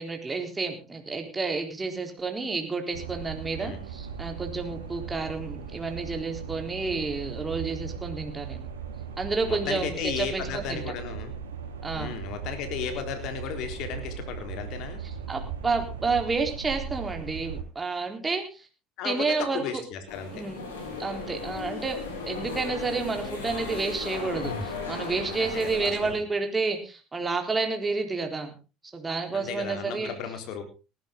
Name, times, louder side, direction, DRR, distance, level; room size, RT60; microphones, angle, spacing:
voice 1, 0.0-8.7 9.2-10.8 11.8-12.2 15.3-18.7 19.0-19.8 20.3-20.6 21.0-22.0 22.3-28.5 28.9-30.1, right 4 dB, 20° right, 4 dB, 3.8 m, -30 dB
sound 1, 2.9-17.6, right 7 dB, 90° right, 3.1 m, -38 dB
voice 2, 9.5-11.3 11.9-15.0 19.0-20.4 25.4-26.2 29.3-30.6, left 7 dB, 65° left, 6 dB, 3.9 m, -35 dB
sound 2, 20.1-26.1, left 4 dB, 85° left, 5.8 m, -36 dB
19.0 x 12.5 x 3.8 m, 0.32 s
hypercardioid pair, 70°, 0 cm